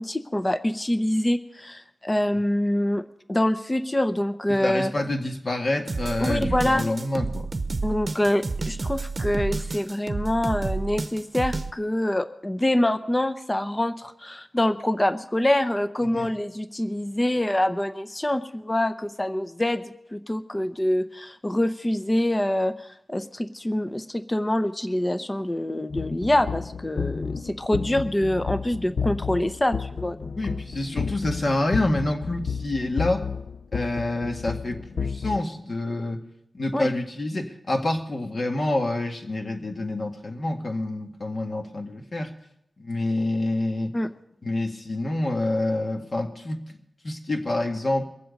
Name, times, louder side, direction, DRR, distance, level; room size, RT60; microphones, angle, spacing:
voice 1, 0.0-3.0 3.3-4.9 6.2-6.8 7.8-30.4 36.7-36.9 43.9-44.1, left 1 dB, 20° left, 10 dB, 0.7 m, -25 dB
voice 2, 4.6-7.5 16.1-16.3 30.4-33.3 33.7-36.2 36.5-42.3 42.8-43.9 44.4-46.6 47.0-48.0, left 2 dB, 45° left, 3 dB, 1.8 m, -27 dB
sound 1, 5.9-11.7, right 3 dB, 45° right, 0.9 m, -30 dB
sound 2, 25.9-35.4, left 5 dB, 70° left, 0.5 m, -31 dB
23.0 x 7.7 x 5.2 m, 0.80 s
wide cardioid pair, 85°, 0 cm